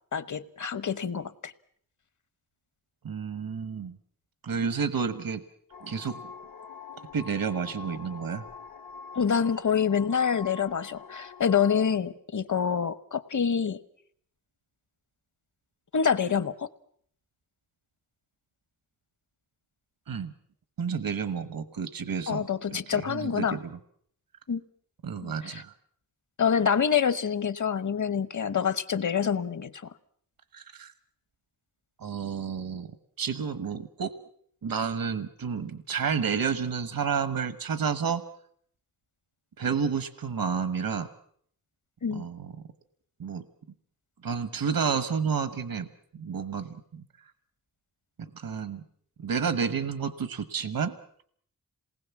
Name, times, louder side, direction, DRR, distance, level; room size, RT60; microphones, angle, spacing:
voice 1, 0.1-1.5 9.1-13.8 15.9-16.7 22.3-23.6 24.5-24.6 25.2-25.6 26.4-29.7 42.0-42.3, left 7 dB, 60° left, 14 dB, 1.1 m, -26 dB
voice 2, 3.0-4.0 4.4-5.4 5.8-6.2 7.1-8.4 20.1-20.3 20.8-22.5 22.9-23.8 25.0-25.7 30.5-30.9 32.0-32.9 33.2-34.1 34.6-38.2 39.6-41.1 42.1-42.5 43.2-43.4 44.2-45.9 46.1-47.0 48.2-48.8 49.2-50.9, right 6 dB, 85° right, 12 dB, 1.2 m, -30 dB
sound 1, 5.7-12.0, left 5 dB, 80° left, 1.2 m, -45 dB
27.5 x 19.5 x 7.1 m, 0.63 s
wide cardioid pair, 105°, 34 cm